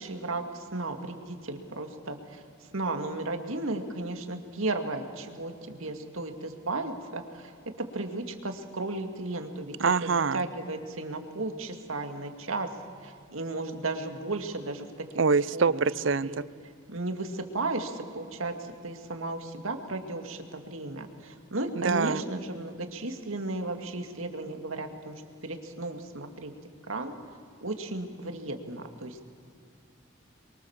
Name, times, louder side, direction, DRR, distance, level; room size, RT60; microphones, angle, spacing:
voice 1, 0.0-2.4 2.7-7.5 7.8-9.7 10.0-12.7 13.0-14.9 15.5-15.8 16.2-16.4 16.9-25.1 25.4-26.5 26.9-27.1 27.6-29.3, right 2 dB, 90° right, 6 dB, 2.3 m, -34 dB
voice 2, 9.8-10.4 15.2-16.4 21.8-22.2, right 5 dB, 65° right, 19 dB, 0.6 m, -25 dB
28.5 x 23.0 x 7.3 m, 2.3 s
head